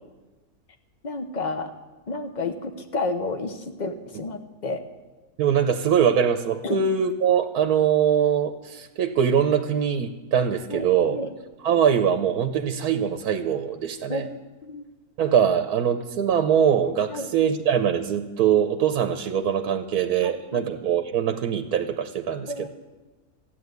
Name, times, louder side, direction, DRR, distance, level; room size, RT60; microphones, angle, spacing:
voice 1, 1.0-1.7 2.1-4.8 6.6-6.8 10.7-11.3 14.1-14.9 17.1-17.3 20.2-20.7 22.5-22.7, left 3 dB, 35° left, 7 dB, 1.0 m, -31 dB
voice 2, 5.4-11.2 11.6-14.3 15.2-22.7, right 8 dB, 75° right, 7 dB, 1.2 m, -22 dB
14.0 x 9.4 x 8.0 m, 1.2 s
omnidirectional pair, 1.6 m